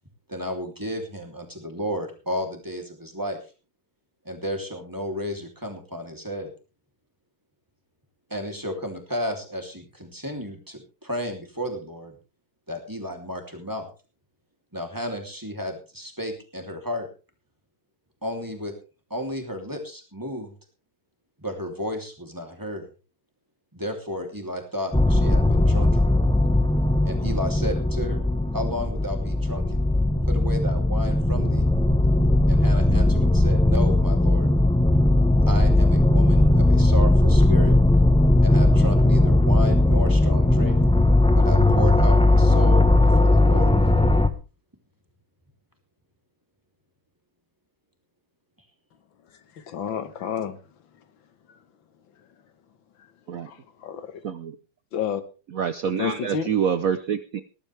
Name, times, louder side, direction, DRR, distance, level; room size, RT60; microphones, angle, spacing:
voice 1, 0.3-3.4 4.2-6.5 8.3-12.1 12.7-13.9 14.7-17.1 18.2-18.7 19.1-20.5 21.4-22.8 23.7-26.1 27.0-28.2 28.5-29.8 30.3-31.6 32.5-34.5 35.5-37.8 38.4-40.8 41.3-43.7, equal, 10° right, 3 dB, 3.0 m, -33 dB
sound 1, 24.9-44.3, left 1 dB, 10° left, 0.3 m, -18 dB
voice 2, 49.6-50.6 51.5-51.6 53.0-53.1 53.4-54.2 54.9-55.2 55.8-56.5, left 8 dB, 85° left, 12 dB, 2.0 m, -30 dB
voice 3, 54.2-54.6 55.5-57.4, right 7 dB, 60° right, 12 dB, 1.0 m, -26 dB
19.0 x 12.0 x 3.4 m, 0.33 s
omnidirectional pair, 2.1 m